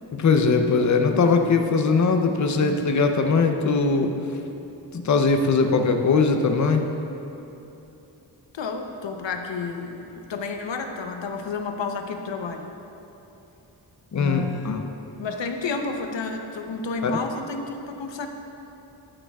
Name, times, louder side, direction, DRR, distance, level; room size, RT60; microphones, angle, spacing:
voice 1, 0.1-4.1 4.9-6.9 14.1-14.9 17.0-17.1, left 4 dB, 40° left, 5 dB, 0.6 m, -20 dB
voice 2, 8.5-12.7 14.1-14.8 15.2-18.3, left 4 dB, 85° left, 5 dB, 0.8 m, -31 dB
12.0 x 8.8 x 2.3 m, 3.0 s
wide cardioid pair, 145°, 43 cm